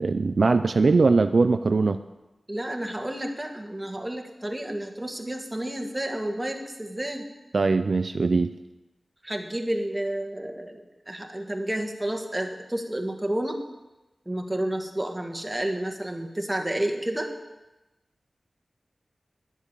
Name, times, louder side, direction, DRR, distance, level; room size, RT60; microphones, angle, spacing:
voice 1, 0.0-2.0 7.5-8.5, right 3 dB, 70° right, 10 dB, 0.4 m, -21 dB
voice 2, 2.5-7.3 9.2-13.6 14.3-17.3, right 1 dB, 15° right, 3 dB, 1.6 m, -30 dB
11.0 x 8.2 x 7.4 m, 1.0 s
wide cardioid pair, 60°, 0 cm